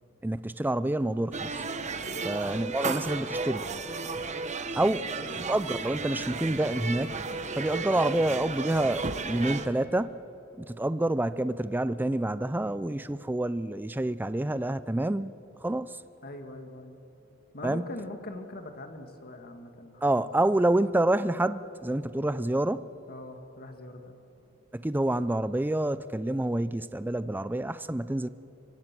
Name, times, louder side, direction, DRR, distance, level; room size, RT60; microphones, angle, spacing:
voice 1, 0.2-1.6 2.2-3.7 4.7-5.1 5.4-7.2 7.6-10.2 10.6-15.3 15.6-16.0 17.6-17.9 20.0-22.9 24.7-28.3, right 1 dB, 10° right, 0.4 m, -28 dB
sound 1, 1.3-9.7, right 4 dB, 35° right, 1.0 m, -34 dB
voice 2, 4.9-5.4 16.2-17.0 17.5-20.2 23.1-24.2, left 1 dB, 50° left, 1.9 m, -42 dB
25.5 x 24.0 x 6.1 m
head